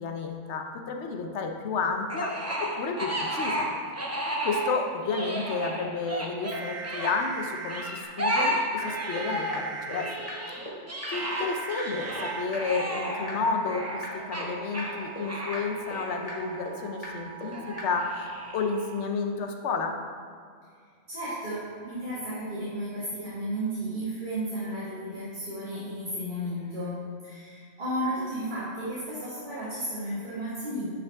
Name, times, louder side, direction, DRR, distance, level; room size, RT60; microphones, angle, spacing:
voice 1, 0.0-3.7 4.4-10.1 11.1-19.9, left 4 dB, 70° left, 4 dB, 1.0 m, -31 dB
sound 1, 2.1-4.8 5.0-7.1 7.7-9.6 9.9-16.9 17.5-18.8, right 1 dB, 15° right, 0.6 m, -33 dB
sound 2, 6.5-7.8 8.8-10.1 11.1-12.4 13.4-19.0, right 5 dB, 70° right, 1.0 m, -41 dB
sound 3, 8.0-8.1 8.4-8.5 8.8-8.9 9.2-9.3 9.5-9.6 9.9-10.0 10.3-10.4 10.7-10.8 11.0-11.1 11.4-11.5 11.8-11.9 12.2-12.3 12.5-12.6 12.9-13.0 13.3-13.4 13.7-13.8 14.0-14.1 14.4-14.5 14.8-14.9 15.2-15.3 15.5-15.6 15.9-16.0 16.3-16.4 16.7-16.8 17.0-17.1 17.4-17.5 17.8-17.9, left 2 dB, 30° left, 1.6 m, -38 dB
voice 2, 21.1-30.9, right 1 dB, 40° right, -11 dB, 1.9 m, -33 dB
9.7 x 5.1 x 3.5 m, 2.1 s
omnidirectional pair, 1.2 m